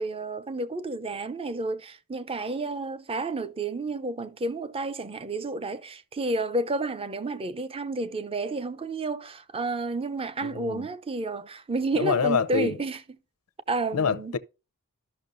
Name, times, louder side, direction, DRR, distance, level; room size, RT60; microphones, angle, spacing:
voice 1, 0.0-13.2 13.7-14.3, right 2 dB, 25° right, 0.6 m, -31 dB
voice 2, 10.4-10.9 12.0-12.8 13.9-14.4, left 6 dB, 80° left, 0.6 m, -26 dB
13.5 x 5.9 x 2.6 m
head